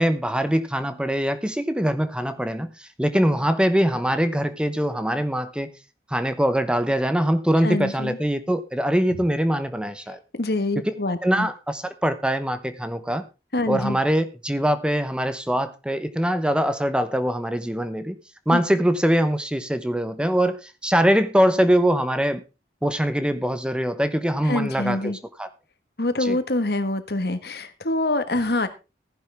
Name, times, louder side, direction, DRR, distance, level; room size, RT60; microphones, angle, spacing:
voice 1, 0.0-5.7 6.1-10.2 11.2-13.3 13.7-18.2 18.5-22.4 22.8-25.5 26.2-26.4, equal, 5° right, 0.9 m, -23 dB
voice 2, 7.6-8.2 9.1-9.2 10.3-11.5 13.5-14.0 18.5-18.6 24.4-25.2 26.0-28.7, left 2 dB, 60° left, 1.6 m, -25 dB
15.5 x 10.5 x 3.5 m
head